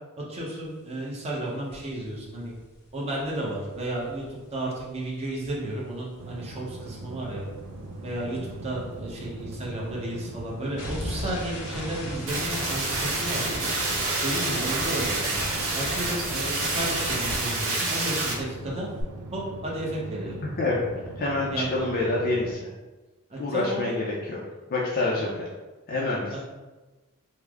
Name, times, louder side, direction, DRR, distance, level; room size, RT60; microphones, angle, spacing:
voice 1, 0.3-2.5 2.9-7.4 8.0-13.7 14.2-15.3 15.7-18.9 19.3-20.3 21.5-21.7 23.3-23.9 26.3-26.4, right 1 dB, 30° right, -4 dB, 0.7 m, -33 dB
sound 1, 1.7-1.9 2.2-6.6 6.8-18.1 18.4-19.0, left 1 dB, 90° left, 0.9 m, -38 dB
sound 2, 6.2-22.5, right 2 dB, 80° right, 0.4 m, -40 dB
sound 3, 12.3-18.3, right 2 dB, 65° right, 0.8 m, -28 dB
voice 2, 20.4-20.8 21.2-22.7 23.4-24.4 24.7-25.5 25.9-26.4, left 2 dB, 45° left, -4 dB, 0.4 m, -27 dB
3.2 x 2.0 x 3.5 m, 1.2 s
head